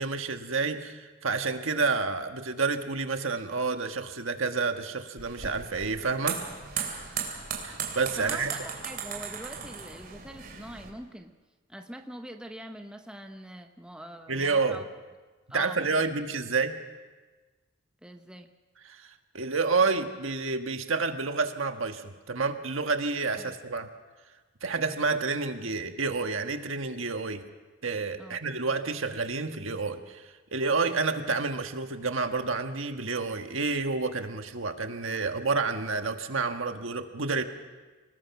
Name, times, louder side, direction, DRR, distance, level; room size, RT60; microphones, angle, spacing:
voice 1, 0.0-6.4 7.6-8.6 14.3-14.8 15.5-16.8 18.8-19.1 19.3-23.9 24.6-27.4 27.8-37.4, right 4 dB, 80° right, 6 dB, 1.5 m, -29 dB
sound 1, 5.2-10.9, right 6 dB, 45° right, 3.1 m, -36 dB
voice 2, 8.2-11.3 11.7-14.8 15.5-16.1 18.0-18.5 23.4-23.5 28.2-28.4, right 1 dB, 5° right, 4 dB, 0.8 m, -43 dB
25.5 x 19.5 x 6.0 m, 1.3 s
head